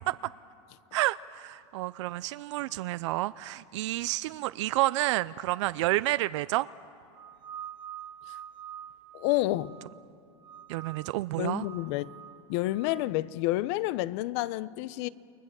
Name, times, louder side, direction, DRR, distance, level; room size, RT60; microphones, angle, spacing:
voice 1, 0.9-6.7 10.7-11.7, right 17 dB, 70° right, 0.5 m, -30 dB
sound 1, 7.1-10.0 10.4-11.2 11.5-13.1, right 10 dB, 30° right, 1.8 m, -46 dB
voice 2, 9.1-9.7 11.4-12.2 12.5-15.1, left 17 dB, 60° left, 0.8 m, -29 dB
29.0 x 22.5 x 7.6 m
supercardioid pair, 125°, 16 cm